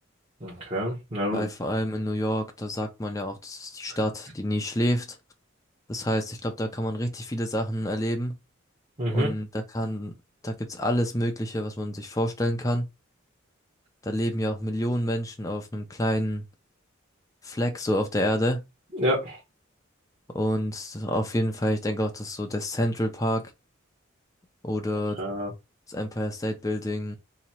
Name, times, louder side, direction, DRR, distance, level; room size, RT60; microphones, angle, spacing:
voice 1, 0.4-1.5 9.0-9.3 18.9-19.4 25.2-25.5, equal, 30° right, 1.1 m, -28 dB
voice 2, 1.3-5.2 5.9-8.4 9.1-10.1 10.4-12.9 14.0-16.4 17.4-18.6 20.3-23.4 24.6-25.2 25.9-27.2, equal, 15° left, 0.5 m, -28 dB
3.0 x 2.8 x 4.2 m
head